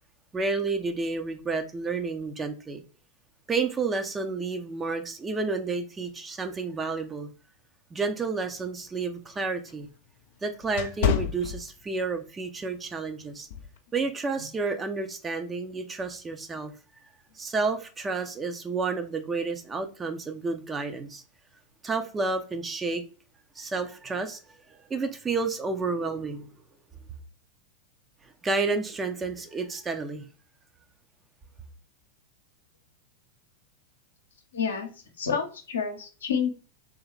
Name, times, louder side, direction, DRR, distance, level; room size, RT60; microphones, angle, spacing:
voice 1, 0.3-2.8 3.5-7.3 7.9-9.9 10.4-13.5 13.9-16.7 17.4-21.2 21.8-23.0 23.6-24.4 24.9-26.5 28.4-30.3, right 4 dB, 15° right, 0.6 m, -30 dB
sound 1, 8.5-12.2 12.6-12.9 13.5-13.8, left 8 dB, 50° left, 0.4 m, -30 dB
voice 2, 34.5-34.9 35.2-36.5, left 6 dB, 70° left, 0.8 m, -29 dB
3.5 x 3.1 x 3.3 m
figure-of-eight pair, 90°, 0 cm